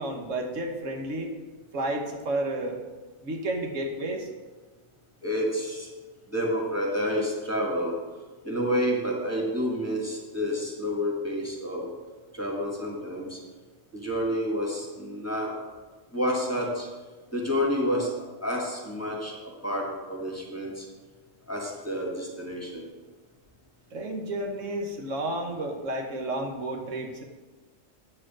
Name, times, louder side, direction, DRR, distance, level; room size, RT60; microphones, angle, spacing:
voice 1, 0.0-1.3 1.7-2.8 3.2-4.3 23.9-27.2, right 1 dB, 75° right, 2 dB, 1.4 m, -31 dB
voice 2, 5.2-5.9 6.3-7.9 8.4-11.9 12.3-13.4 13.9-15.5 16.1-16.9 17.3-19.3 19.6-20.9 21.5-22.9, equal, 10° left, -2 dB, 1.6 m, -29 dB
8.9 x 4.8 x 7.4 m, 1.4 s
omnidirectional pair, 1.3 m